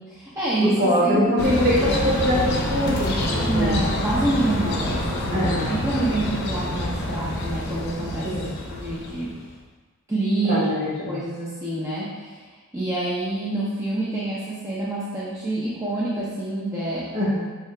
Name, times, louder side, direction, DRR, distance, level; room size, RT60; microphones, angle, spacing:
voice 1, 0.0-1.4 3.4-8.3 8.7-9.3 10.1-10.6 11.1-12.5 12.7-17.1, right 2 dB, 15° right, -8 dB, 0.6 m, -27 dB
voice 2, 0.6-3.7 5.3-5.8 8.2-8.6 10.4-11.2 17.1-17.5, equal, 50° right, -7 dB, 1.4 m, -23 dB
sound 1, 1.4-9.5, left 1 dB, 55° left, 0.6 m, -27 dB
4.7 x 2.8 x 3.3 m, 1.3 s
head